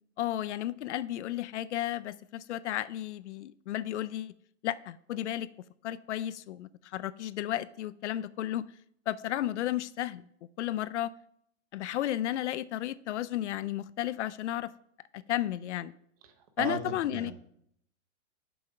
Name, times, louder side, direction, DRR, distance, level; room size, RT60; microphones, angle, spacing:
voice 1, 0.2-4.3 4.6-5.5 5.8-8.7 9.1-10.2 10.6-11.1 11.7-14.7 15.1-15.9 16.6-17.3, left 13 dB, 65° left, 17 dB, 0.5 m, -33 dB
voice 2, 16.6-17.3, right 5 dB, 30° right, 8 dB, 0.8 m, -36 dB
6.9 x 5.5 x 5.0 m, 0.70 s
supercardioid pair, 175°, 37 cm